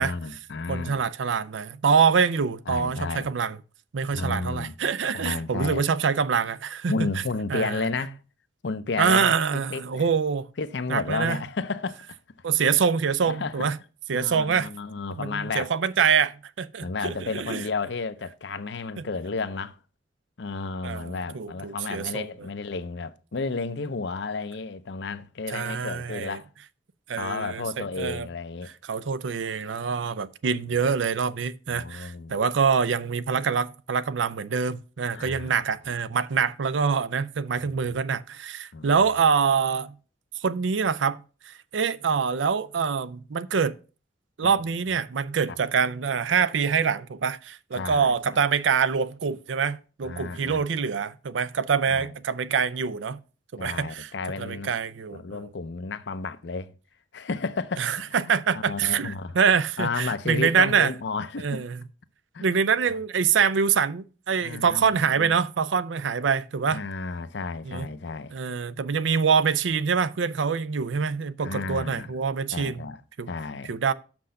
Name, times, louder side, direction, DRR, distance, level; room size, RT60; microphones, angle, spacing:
voice 1, 0.0-1.0 2.7-3.3 4.1-4.7 5.1-5.9 6.9-8.2 8.6-10.1 10.6-12.0 13.3-13.7 14.1-15.7 16.8-19.8 20.4-26.5 27.2-28.7 31.7-32.3 35.1-36.0 37.6-37.7 38.7-39.1 44.4-44.6 45.5-45.6 47.7-48.4 50.0-50.7 51.9-52.1 53.6-54.7 55.1-56.7 57.1-58.0 58.2-59.4 59.8-61.6 62.3-62.5 62.9-63.0 64.4-65.3 66.7-68.3 71.4-72.1 72.5-73.0 73.3-73.7, left 4 dB, 65° left, 0.6 m, -32 dB
voice 2, 0.7-3.6 3.9-6.9 7.5-7.8 9.0-10.5 10.9-11.4 12.4-13.8 14.1-14.7 15.2-17.6 20.8-22.3 25.5-26.4 27.1-28.3 28.9-39.9 40.4-43.7 44.4-53.2 53.5-54.1 54.4-55.5 57.8-60.9 61.4-61.8 62.4-66.8 67.7-67.9 68.3-72.8 73.2-73.3 73.7-73.9, right 6 dB, 85° right, 0.5 m, -25 dB
6.4 x 6.0 x 5.6 m
head